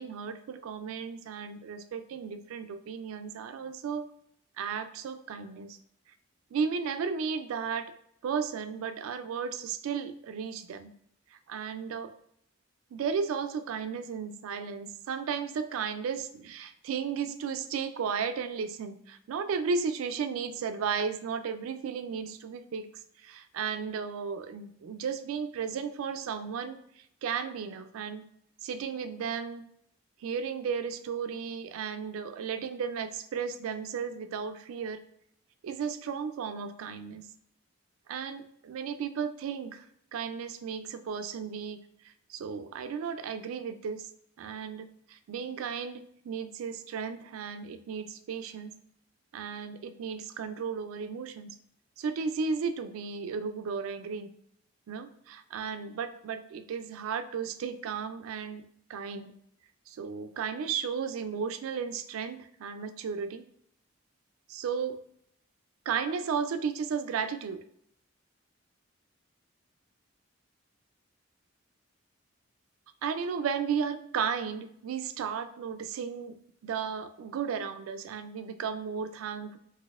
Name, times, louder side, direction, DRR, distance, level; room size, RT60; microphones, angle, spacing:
voice 1, 0.0-4.1 4.6-5.8 6.5-7.9 8.2-10.9 11.3-12.1 12.9-28.2 28.6-29.6 30.2-35.0 35.6-37.2 38.1-39.9 40.1-41.8 42.3-44.1 44.4-48.7 49.3-51.5 52.0-54.3 54.9-58.6 58.9-59.3 59.9-63.4 64.5-65.0 65.9-67.6 73.0-76.4 76.6-79.6, right 6 dB, 80° right, 10 dB, 0.3 m, -34 dB
4.0 x 2.6 x 2.4 m, 0.70 s
head